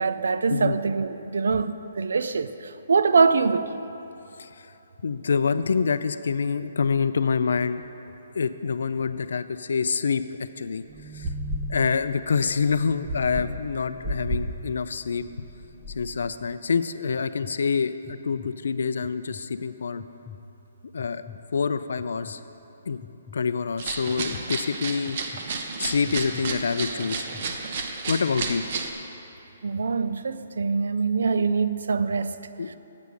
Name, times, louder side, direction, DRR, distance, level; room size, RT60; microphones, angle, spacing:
voice 1, 0.0-3.8 29.6-32.4 32.7-32.8, right 4 dB, 80° right, 0.4 m, -24 dB
voice 2, 5.0-7.8 8.4-10.2 10.6-10.8 11.2-11.3 11.7-15.5 16.0-20.0 20.9-21.2 21.5-22.4 22.9-23.0 23.3-25.4 25.8-27.3 28.1-28.6 32.6-32.7, left 5 dB, 75° left, 0.4 m, -26 dB
sound 1, 10.9-16.3, equal, 10° right, 0.7 m, -34 dB
sound 2, 16.4-16.5 17.1-17.5 18.0-18.5 19.0-19.4 20.0-20.4 21.0-21.4 22.0-22.3 23.0-23.4 24.1-24.4 25.1-25.4 26.0-26.4 27.0-27.4, left 7 dB, 10° left, 0.4 m, -44 dB
sound 3, 23.8-28.9, right 4 dB, 45° right, 0.8 m, -32 dB
8.3 x 6.8 x 6.3 m
hypercardioid pair, 160°, 0 cm